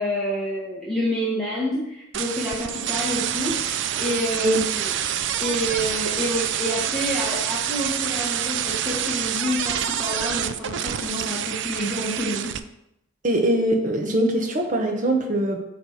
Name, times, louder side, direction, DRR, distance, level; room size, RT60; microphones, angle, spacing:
voice 1, 0.0-4.9 5.4-12.5, equal, ahead, -8 dB, 1.3 m, -28 dB
sound 1, 2.1-12.6, right 10 dB, 60° right, 0.4 m, -27 dB
voice 2, 13.2-15.6, right 1 dB, 40° right, 3 dB, 1.1 m, -22 dB
8.6 x 3.3 x 5.6 m, 0.83 s
head